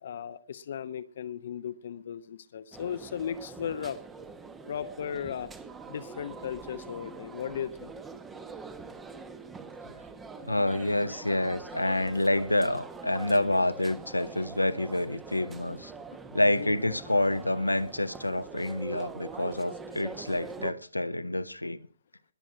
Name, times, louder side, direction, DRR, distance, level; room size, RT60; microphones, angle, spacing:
voice 1, 0.0-4.0 4.7-5.5 5.9-7.9 16.6-16.7, left 8 dB, 45° left, 0.9 m, -36 dB
sound 1, 2.7-20.7, right 4 dB, 10° right, 1.0 m, -44 dB
voice 2, 10.4-15.9 16.3-21.8, left 1 dB, 80° left, 1.0 m, -28 dB
21.0 x 7.5 x 5.0 m
figure-of-eight pair, 125°, 0 cm